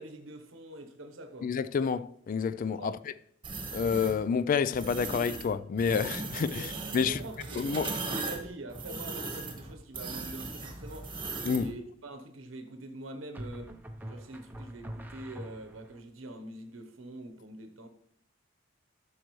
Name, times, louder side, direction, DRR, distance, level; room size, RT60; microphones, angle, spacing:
voice 1, 0.0-1.5 2.8-3.0 6.5-11.1 11.5-13.8 14.1-17.9, right 2 dB, 80° right, 0.9 m, -44 dB
voice 2, 1.4-3.0 3.7-7.2 7.6-7.9 11.4-11.8, left 6 dB, 45° left, 0.3 m, -29 dB
sound 1, 3.4-4.2 4.7-5.5 5.8-11.7, right 3 dB, 25° right, 1.3 m, -38 dB
sound 2, 10.7-11.2 13.4-16.0, equal, 10° right, 0.7 m, -44 dB
13.5 x 6.2 x 3.1 m
head